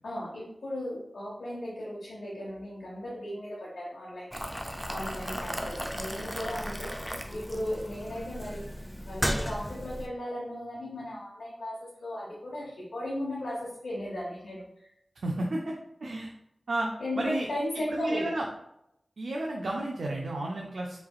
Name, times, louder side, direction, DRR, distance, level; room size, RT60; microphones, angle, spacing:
voice 1, 0.0-4.3 4.9-14.9 17.0-18.3, left 1 dB, 90° left, -7 dB, 1.0 m, -36 dB
Boiling, 4.3-10.1, equal, ahead, 0.5 m, -35 dB
voice 2, 15.2-15.7 16.0-16.3 16.7-16.9 17.2-17.5 17.9-18.4 19.2-21.0, right 2 dB, 80° right, -1 dB, 0.5 m, -31 dB
4.6 x 3.2 x 2.3 m, 0.81 s
wide cardioid pair, 60°, 0 cm